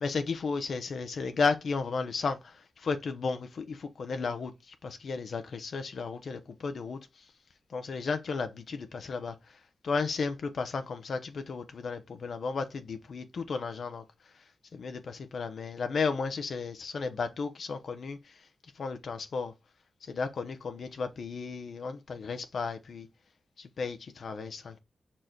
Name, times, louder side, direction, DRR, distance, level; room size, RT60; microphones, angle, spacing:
voice 1, 0.0-2.4 2.8-4.5 4.8-7.0 7.7-9.3 9.8-14.0 14.7-18.2 18.8-19.5 20.1-23.1 23.6-24.8, left 4 dB, 70° left, 0.7 m, -33 dB
5.0 x 4.4 x 4.4 m
cardioid pair, 80°, 0 cm